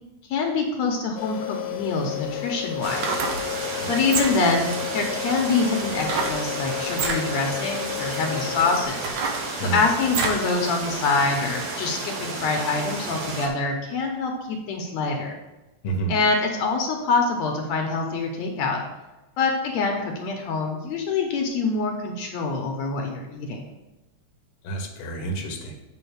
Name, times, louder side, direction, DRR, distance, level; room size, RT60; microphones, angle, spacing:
voice 1, 0.3-3.1 3.9-9.1 9.6-15.4 16.1-18.8 19.4-23.7, left 4 dB, 75° left, 2 dB, 2.0 m, -25 dB
sound 1, 1.2-8.9, left 13 dB, 90° left, 2.3 m, -32 dB
sound 2, 2.8-13.5, right 3 dB, 55° right, 1.1 m, -32 dB
sound 3, 2.9-3.5 4.0-4.6 6.0-6.4 6.9-7.2 7.9-8.0 8.6-10.5 10.9-11.0, right 4 dB, 75° right, 2.2 m, -28 dB
voice 2, 3.7-4.0 9.5-9.8 15.8-16.1 24.6-25.7, right 4 dB, 60° left, 2 dB, 1.6 m, -29 dB
7.9 x 3.8 x 6.3 m, 1.0 s
omnidirectional pair, 3.4 m